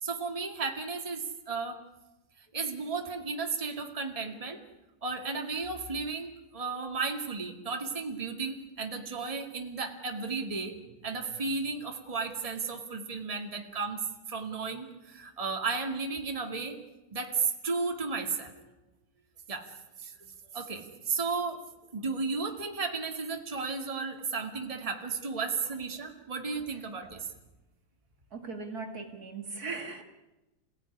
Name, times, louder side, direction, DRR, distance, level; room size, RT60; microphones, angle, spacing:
voice 1, 0.0-1.8 2.4-4.6 5.0-14.0 14.3-16.8 17.1-18.6 19.5-19.7 20.0-21.6 21.9-27.3, right 4 dB, 15° right, 3 dB, 2.2 m, -34 dB
voice 2, 28.3-30.0, right 4 dB, 50° right, 4 dB, 2.5 m, -38 dB
27.5 x 17.0 x 9.9 m, 1.0 s
omnidirectional pair, 2.2 m